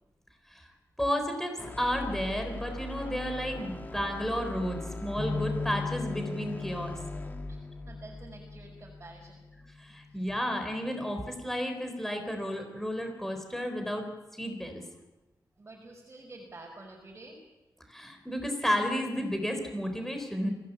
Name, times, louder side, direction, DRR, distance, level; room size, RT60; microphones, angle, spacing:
voice 1, 1.0-7.0 9.8-14.1 14.3-14.8 17.9-20.5, equal, 5° left, 5 dB, 4.0 m, -32 dB
sound 1, 1.6-9.7, left 2 dB, 25° left, 1.7 m, -41 dB
sound 2, 5.2-9.4 9.9-10.1 11.0-11.4, left 3 dB, 55° left, 6.5 m, -38 dB
voice 2, 7.5-9.5 10.1-10.4 15.6-17.4, right 2 dB, 25° right, -3 dB, 5.5 m, -49 dB
25.5 x 17.0 x 8.5 m, 1.1 s
wide cardioid pair, 160°, 7 cm